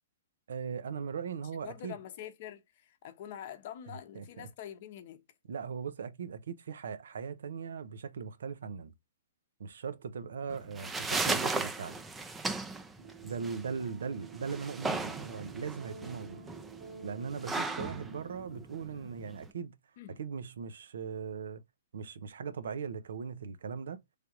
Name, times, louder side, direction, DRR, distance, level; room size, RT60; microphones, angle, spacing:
voice 1, 0.5-2.0 4.1-4.5 5.5-8.9 9.6-12.0 13.2-16.4 17.0-19.7 20.2-21.6 21.9-24.0, right 6 dB, 75° right, 0.5 m, -39 dB
voice 2, 1.6-5.2 10.2-10.5 13.8-14.1 20.0-20.2, left 10 dB, 45° left, 0.7 m, -46 dB
sound 1, 10.5-19.5, right 3 dB, 10° right, 0.4 m, -36 dB
sound 2, 13.0-18.7, right 6 dB, 45° right, 0.9 m, -50 dB
3.3 x 2.3 x 2.9 m
hypercardioid pair, 155°, 0 cm